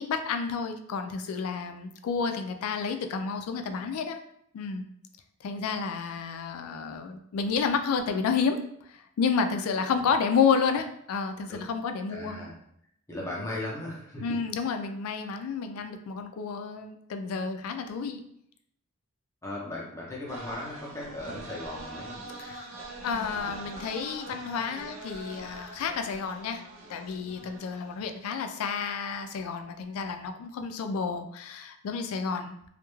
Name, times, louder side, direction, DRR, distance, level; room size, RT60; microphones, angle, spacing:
voice 1, 0.0-4.2 4.5-4.8 5.4-8.6 8.9-12.4 14.2-18.2 22.4-22.7 23.0-26.6 26.9-32.6, left 5 dB, 85° left, 8 dB, 0.3 m, -30 dB
voice 2, 12.1-12.5 13.1-14.4 19.4-22.2 23.3-23.6 27.4-27.5, left 1 dB, 15° left, -4 dB, 0.5 m, -37 dB
sound 1, 20.3-28.5, right 2 dB, 70° right, 0.5 m, -43 dB
2.2 x 2.1 x 3.0 m, 0.71 s
head